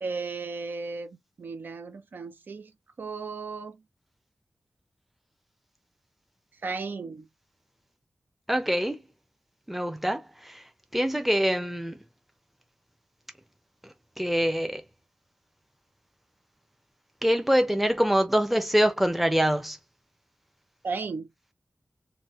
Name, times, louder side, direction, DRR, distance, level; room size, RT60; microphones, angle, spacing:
voice 1, 0.0-2.7 3.0-3.8 6.6-7.2 20.8-21.3, right 4 dB, 75° right, 0.5 m, -35 dB
voice 2, 8.5-9.0 9.7-10.6 10.9-12.0 13.8-14.8 17.2-19.8, equal, 5° right, 0.6 m, -25 dB
3.1 x 2.2 x 3.1 m
wide cardioid pair, 105°, 3 cm